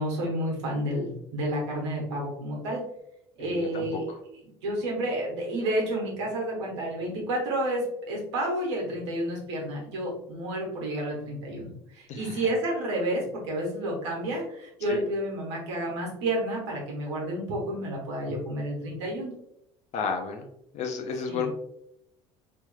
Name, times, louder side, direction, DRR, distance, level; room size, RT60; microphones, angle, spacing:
voice 1, 0.0-2.8 3.4-4.0 4.6-19.3 21.3-21.5, right 1 dB, 85° right, -2 dB, 1.2 m, -30 dB
voice 2, 3.4-4.2 12.1-12.5 14.9-15.0 19.9-20.5 20.7-21.5, left 5 dB, 50° left, 4 dB, 0.5 m, -32 dB
3.1 x 3.0 x 2.3 m, 0.77 s
hypercardioid pair, 75°, 15 cm